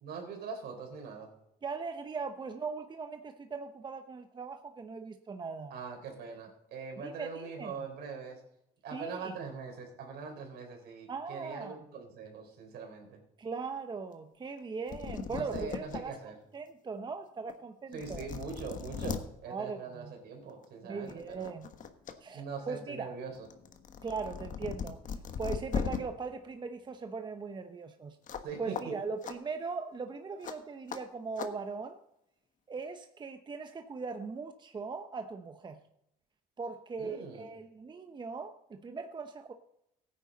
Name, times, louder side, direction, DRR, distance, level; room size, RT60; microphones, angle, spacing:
voice 1, 0.0-1.3 5.7-8.4 8.8-13.2 15.3-16.3 17.9-21.5 22.3-23.5 28.4-28.9 37.0-37.5, right 5 dB, 70° right, 3 dB, 3.9 m, -42 dB
voice 2, 1.6-5.8 7.0-7.9 8.9-9.4 11.1-11.8 13.4-16.2 16.5-18.3 19.5-20.1 20.9-21.7 22.2-23.1 24.0-25.0 25.4-28.2 28.6-32.0 32.7-35.8 36.6-39.5, right 4 dB, 25° right, 7 dB, 0.8 m, -39 dB
sound 1, 14.6-14.7 14.9-16.0 16.6-16.7 17.5-17.6 17.9-19.2 20.5-20.7 21.1-22.1 22.5-26.0 28.3-28.5 28.7-28.8 29.2-29.4 30.4-30.6 30.9-31.0 31.4-31.5, left 7 dB, 50° left, 1.3 m, -38 dB
16.0 x 9.5 x 4.0 m, 0.81 s
cardioid pair, 110°, 17 cm